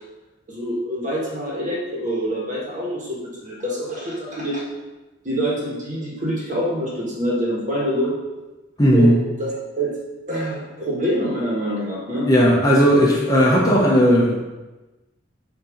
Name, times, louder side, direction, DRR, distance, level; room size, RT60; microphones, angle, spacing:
voice 1, 0.5-4.6 5.2-8.2 8.9-9.9 10.3-12.3, equal, 40° right, -4 dB, 1.5 m, -26 dB
voice 2, 8.8-9.1 12.3-14.4, equal, 20° left, -5 dB, 0.9 m, -15 dB
6.6 x 2.9 x 5.0 m, 1.1 s
head